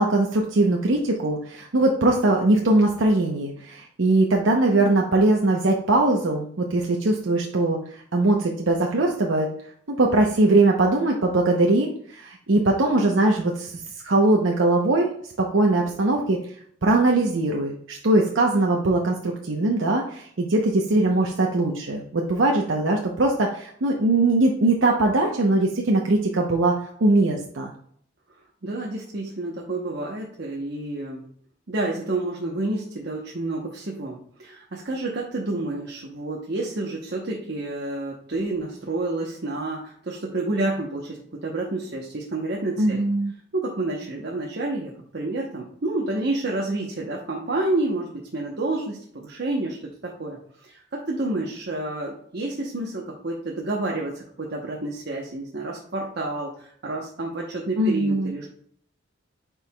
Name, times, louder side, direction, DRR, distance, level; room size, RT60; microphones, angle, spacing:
voice 1, 0.0-9.5 9.9-15.1 15.4-16.4 16.8-26.8 27.0-27.7 42.8-43.3 57.8-58.3, right 2 dB, 85° right, 0 dB, 0.8 m, -21 dB
voice 2, 28.6-31.2 31.7-43.0 43.5-49.8 50.0-58.5, right 2 dB, 60° right, -1 dB, 0.9 m, -29 dB
8.8 x 4.6 x 2.3 m, 0.63 s
head